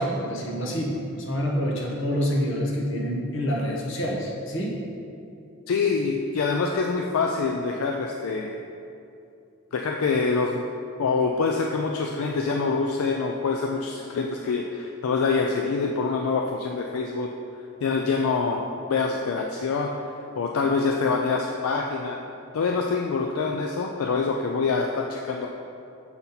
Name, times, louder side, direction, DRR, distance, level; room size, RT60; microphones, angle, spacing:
voice 1, 0.0-4.9, equal, 55° left, -1 dB, 0.9 m, -27 dB
voice 2, 5.7-8.6 9.7-10.6 11.0-17.3 17.8-19.9 20.4-22.2 22.5-25.5, left 4 dB, 75° left, 1 dB, 0.4 m, -25 dB
7.0 x 4.1 x 4.0 m, 2.7 s
head